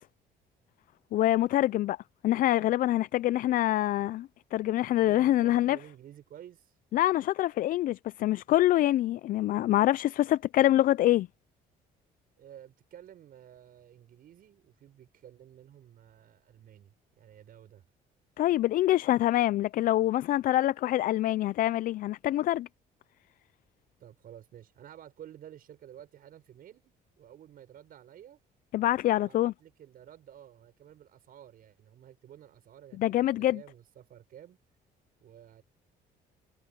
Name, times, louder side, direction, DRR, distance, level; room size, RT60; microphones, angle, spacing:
voice 1, 1.1-2.0 2.2-5.8 6.9-11.3 18.4-22.7 28.7-29.5 33.0-33.6, left 14 dB, 55° left, 0.4 m, -25 dB
voice 2, 5.0-6.8 12.4-17.8 24.0-28.4 29.0-34.6 35.2-35.6, right 10 dB, 60° right, 6.6 m, -52 dB
cardioid pair, 110°, 17 cm